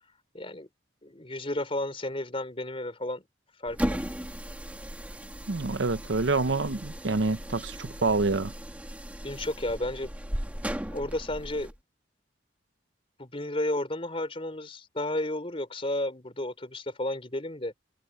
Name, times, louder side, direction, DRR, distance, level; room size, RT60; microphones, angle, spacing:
voice 1, 0.3-0.7 1.0-3.3 3.6-4.0 9.2-10.1 10.9-11.8 13.2-17.7, left 1 dB, 30° left, 3.7 m, -32 dB
sound 1, 3.7-11.7, equal, 10° right, 1.6 m, -36 dB
voice 2, 5.5-8.5, right 3 dB, 75° right, 0.8 m, -27 dB
head